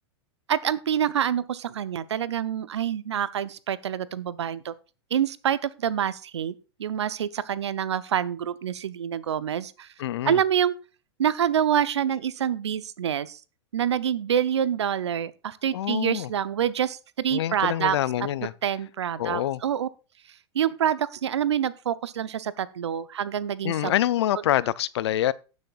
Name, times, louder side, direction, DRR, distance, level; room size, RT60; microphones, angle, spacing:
voice 1, 0.5-4.7 5.1-6.5 6.8-9.9 10.2-10.7 11.2-13.4 13.7-18.0 18.6-19.9 20.3-23.9, right 9 dB, 80° right, 0.7 m, -26 dB
voice 2, 10.0-10.4 15.7-16.3 17.3-18.5 19.2-19.6 23.6-25.3, left 13 dB, 70° left, 0.5 m, -26 dB
18.0 x 6.4 x 2.4 m
hypercardioid pair, 105°, 14 cm